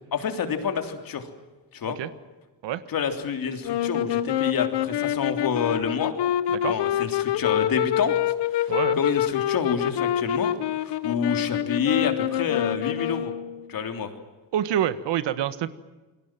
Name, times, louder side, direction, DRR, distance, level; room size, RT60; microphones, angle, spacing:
voice 1, 0.1-1.3 1.7-2.0 2.9-6.1 6.6-8.2 8.5-10.5 10.8-13.3 13.7-14.1, left 6 dB, 50° left, 6 dB, 3.5 m, -28 dB
sound 1, 3.6-13.7, left 11 dB, 65° left, 1.3 m, -26 dB
voice 2, 6.5-6.8 8.7-9.0 14.5-15.7, right 11 dB, 75° right, 13 dB, 1.6 m, -27 dB
28.5 x 22.0 x 7.6 m, 1.2 s
cardioid pair, 140°, 43 cm